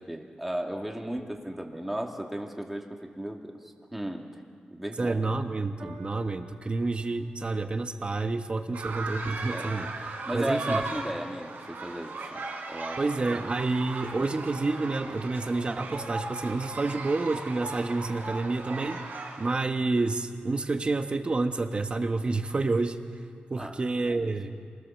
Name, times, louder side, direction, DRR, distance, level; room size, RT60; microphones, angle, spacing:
voice 1, 0.0-4.3 4.7-5.2 5.8-5.9 9.5-9.7 10.3-12.4 12.7-13.3 14.1-14.4 23.6-23.8 24.1-24.3, right 1 dB, 5° right, 2 dB, 2.1 m, -35 dB
voice 2, 5.0-9.9 10.3-10.8 13.0-19.0 19.4-23.0 23.5-24.6, right 3 dB, 30° right, 7 dB, 1.3 m, -29 dB
Piano, 5.8-12.4 13.2-13.3, right 2 dB, 50° right, 3.4 m, -56 dB
sound 1, 8.7-19.6, right 3 dB, 80° right, 3.5 m, -37 dB
27.5 x 20.0 x 7.2 m, 2.1 s
wide cardioid pair, 150°, 3 cm